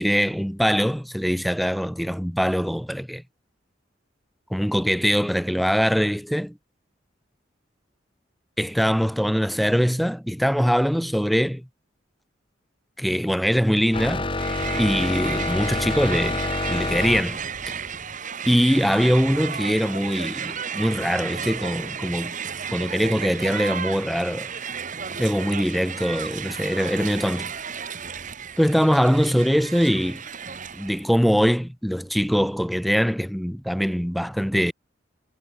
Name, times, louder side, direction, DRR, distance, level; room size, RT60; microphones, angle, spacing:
voice 1, 0.0-3.2 4.5-6.6 8.6-11.7 13.0-14.4 14.7-16.4 16.7-17.7 18.5-22.3 22.7-24.5 25.2-27.5 28.6-30.2 30.7-34.7, equal, ahead, 1.3 m, -22 dB
sound 1, 13.9-17.2, left 2 dB, 30° left, 1.3 m, -27 dB
Crowd, 14.3-31.0, right 7 dB, 45° right, 2.2 m, -33 dB
head